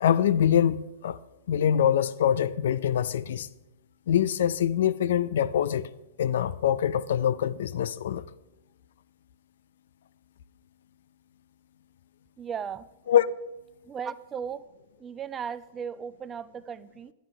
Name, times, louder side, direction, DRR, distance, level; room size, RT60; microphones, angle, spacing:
voice 1, 0.0-1.2 1.5-3.5 4.1-5.9 6.2-8.2 13.1-13.3, left 9 dB, 60° left, 0.4 m, -24 dB
voice 2, 12.4-12.9 13.9-14.6 15.0-17.1, right 7 dB, 20° right, 0.5 m, -36 dB
10.5 x 10.0 x 4.9 m
figure-of-eight pair, 105°, 0 cm